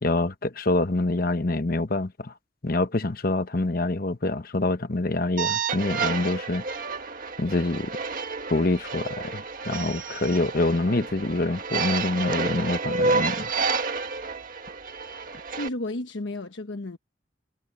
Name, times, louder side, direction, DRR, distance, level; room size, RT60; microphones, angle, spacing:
voice 1, 0.0-2.3 2.6-6.6 7.4-7.9 8.5-13.5, left 2 dB, 50° left, 1.0 m, -26 dB
sound 1, 5.4-15.7, right 4 dB, 50° right, 1.7 m, -30 dB
voice 2, 15.6-17.0, left 2 dB, 85° left, 1.1 m, -32 dB
head